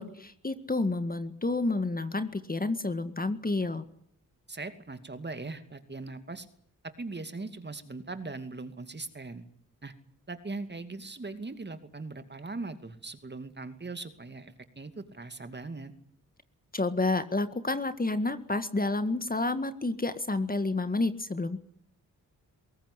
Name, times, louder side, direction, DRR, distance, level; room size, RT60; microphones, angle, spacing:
voice 1, 0.0-3.9 16.7-21.6, left 2 dB, 25° left, 11 dB, 1.8 m, -30 dB
voice 2, 4.5-6.5 7.0-9.5 9.8-9.9 10.3-15.9, right 3 dB, 30° right, 10 dB, 2.5 m, -40 dB
21.5 x 18.0 x 10.0 m, 0.65 s
cardioid pair, 55°, 35 cm